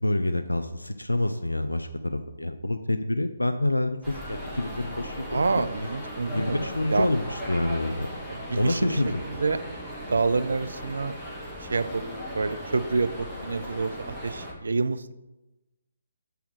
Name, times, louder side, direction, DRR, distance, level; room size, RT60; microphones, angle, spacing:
voice 1, 0.0-5.4 6.3-8.1 8.5-9.2, left 1 dB, 80° left, 8 dB, 0.4 m, -27 dB
sound 1, 4.0-14.5, equal, ahead, 1.4 m, -37 dB
voice 2, 5.3-7.1 8.3-9.0 9.3-9.6 10.1-11.1 11.6-12.0 12.3-15.1, right 4 dB, 60° right, 12 dB, 0.4 m, -27 dB
7.1 x 3.4 x 6.0 m, 1.0 s
figure-of-eight pair, 135°, 0 cm